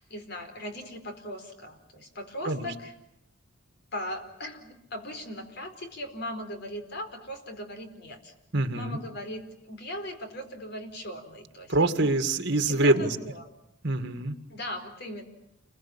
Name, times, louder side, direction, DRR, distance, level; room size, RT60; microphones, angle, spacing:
voice 1, 0.0-2.9 3.9-8.3 8.7-12.1 12.7-13.5 14.5-15.2, left 1 dB, 55° left, 7 dB, 4.6 m, -39 dB
voice 2, 8.5-9.0 11.7-13.2 13.8-14.4, right 2 dB, 60° right, 8 dB, 2.2 m, -25 dB
29.5 x 22.5 x 8.8 m, 0.80 s
head